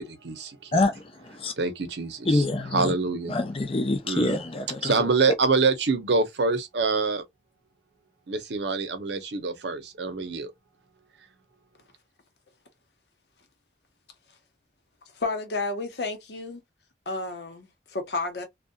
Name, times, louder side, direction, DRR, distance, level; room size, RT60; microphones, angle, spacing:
voice 1, 0.0-0.8 1.6-2.4 2.7-3.4 4.0-4.3 4.8-7.2 8.3-10.5, right 4 dB, 75° right, 0.7 m, -26 dB
voice 2, 0.7-1.5 2.3-2.9 3.3-5.1, left 2 dB, 30° left, 0.5 m, -26 dB
voice 3, 15.1-16.6 17.1-18.4, left 3 dB, 70° left, 0.8 m, -31 dB
2.7 x 2.2 x 2.2 m
head